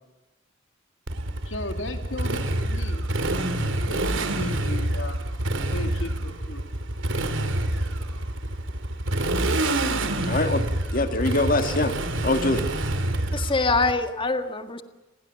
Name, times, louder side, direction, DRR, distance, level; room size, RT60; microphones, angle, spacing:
Motorcycle, 1.1-13.9, right 1 dB, 90° right, 2.7 m, -27 dB
voice 1, 1.4-3.1 3.7-5.2 5.7-6.7, left 1 dB, 80° left, 6 dB, 2.6 m, -36 dB
voice 2, 10.3-12.0 12.2-12.7, left 2 dB, 45° left, 8 dB, 1.9 m, -24 dB
voice 3, 13.3-14.8, left 3 dB, 25° left, 8 dB, 1.7 m, -24 dB
29.5 x 19.5 x 7.2 m, 1.1 s
head